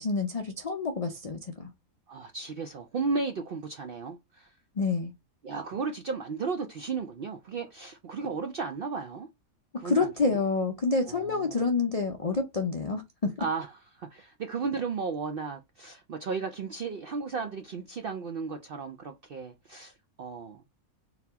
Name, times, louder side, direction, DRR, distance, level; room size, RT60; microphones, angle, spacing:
voice 1, 0.0-1.7 4.8-5.1 9.8-13.3, left 4 dB, 75° left, 0.3 m, -28 dB
voice 2, 2.1-4.5 5.4-9.3 9.8-10.4 11.1-11.7 13.4-20.7, right 4 dB, 70° right, 0.5 m, -35 dB
3.9 x 2.8 x 3.4 m
omnidirectional pair, 1.5 m